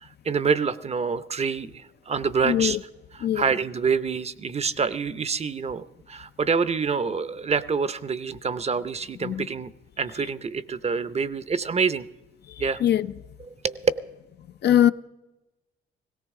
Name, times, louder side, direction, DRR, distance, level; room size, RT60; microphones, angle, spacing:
voice 1, 0.0-2.8 3.1-9.7 10.0-12.0 12.6-12.8 13.4-13.8, right 5 dB, 30° right, 0.7 m, -27 dB
voice 2, 2.4-2.8 3.2-3.4 9.2-9.5 12.8-13.1 14.6-14.9, left 11 dB, 55° left, 0.5 m, -21 dB
17.5 x 17.5 x 3.7 m
cardioid pair, 90°, 20 cm